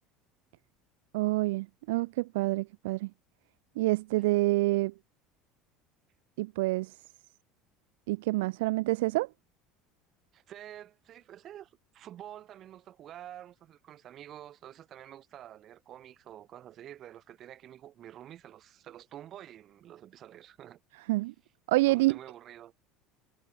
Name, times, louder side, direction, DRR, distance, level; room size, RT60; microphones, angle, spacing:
voice 1, 1.1-3.1 3.8-4.9 6.4-7.0 8.1-9.3 21.1-21.3 21.7-22.2, right 20 dB, 60° right, 0.7 m, -27 dB
voice 2, 10.3-20.8 21.9-22.8, right 11 dB, 40° right, 6.2 m, -48 dB
figure-of-eight pair, 65°, 0 cm